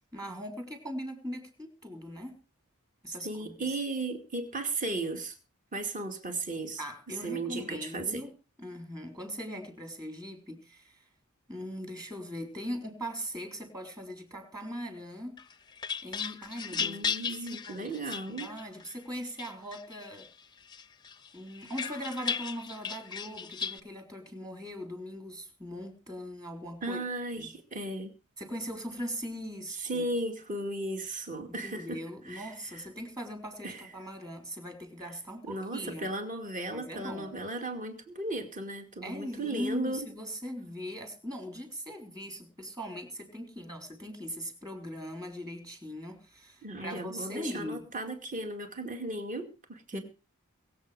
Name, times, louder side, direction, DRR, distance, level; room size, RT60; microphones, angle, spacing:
voice 1, 0.1-2.4 3.0-3.8 6.8-8.3 8.6-11.0 11.5-15.4 16.0-18.0 18.3-20.3 21.3-27.0 27.4-27.5 28.4-30.0 31.5-36.1 36.7-37.4 39.0-47.8 49.9-50.0, equal, 15° right, 4 dB, 3.8 m, -40 dB
voice 2, 3.2-5.4 5.7-6.8 7.2-8.2 16.7-18.5 26.8-28.1 29.8-32.8 33.6-33.9 35.4-40.1 46.6-50.0, right 2 dB, 35° right, 5 dB, 2.3 m, -36 dB
sound 1, 15.4-18.9 19.4-20.3 20.7-23.8, left 6 dB, 20° left, 0.6 m, -36 dB
22.5 x 7.9 x 4.9 m, 0.33 s
head